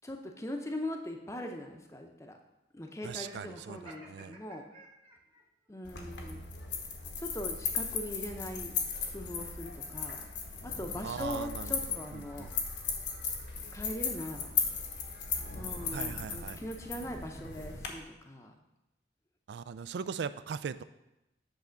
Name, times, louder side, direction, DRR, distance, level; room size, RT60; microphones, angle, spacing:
voice 1, 0.0-2.4 2.7-4.6 5.7-6.5 7.2-8.7 9.1-10.3 10.6-12.5 13.7-14.6 15.5-18.5, left 1 dB, 15° left, 3 dB, 0.6 m, -41 dB
voice 2, 3.0-3.8 4.0-4.4 11.0-12.5 15.9-16.6 19.5-20.8, right 6 dB, 70° right, 14 dB, 0.3 m, -39 dB
Laughter, 3.1-5.4, right 2 dB, 30° right, 1.1 m, -54 dB
sound 1, 5.8-17.9, left 6 dB, 80° left, 1.1 m, -37 dB
8.2 x 3.5 x 6.3 m, 0.91 s
head